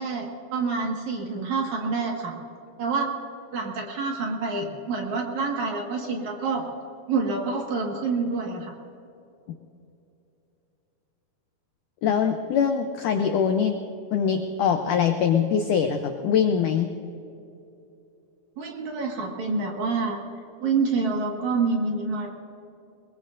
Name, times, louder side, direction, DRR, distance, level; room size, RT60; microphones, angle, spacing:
voice 1, 0.0-2.3 2.8-3.1 3.5-6.6 7.1-8.7 18.6-20.2 20.6-22.3, right 4 dB, 55° right, 0 dB, 2.8 m, -27 dB
voice 2, 12.0-13.8 14.1-16.9, left 7 dB, 80° left, 5 dB, 1.8 m, -23 dB
22.5 x 22.0 x 2.6 m, 2.7 s
omnidirectional pair, 4.5 m